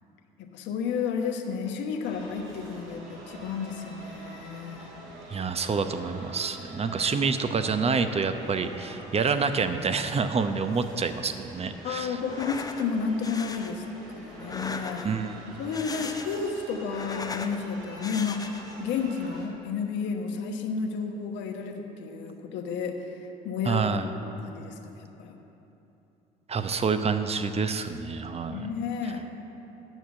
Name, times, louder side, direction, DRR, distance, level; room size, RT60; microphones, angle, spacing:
voice 1, 0.4-5.0 11.8-15.2 15.6-25.4 28.5-29.2, left 5 dB, 65° left, 4 dB, 1.1 m, -32 dB
sound 1, 2.0-19.5, right 1 dB, 75° right, 2.0 m, -46 dB
voice 2, 5.3-12.2 15.0-15.4 23.6-24.1 26.5-28.7, right 5 dB, 30° right, 9 dB, 0.8 m, -27 dB
sound 2, 12.2-12.8 13.2-13.7 14.4-15.2 15.6-16.5 16.8-17.6 18.0-18.8, left 3 dB, 20° left, 0.8 m, -38 dB
9.2 x 6.9 x 7.5 m, 3.0 s
hypercardioid pair, 60°, 20 cm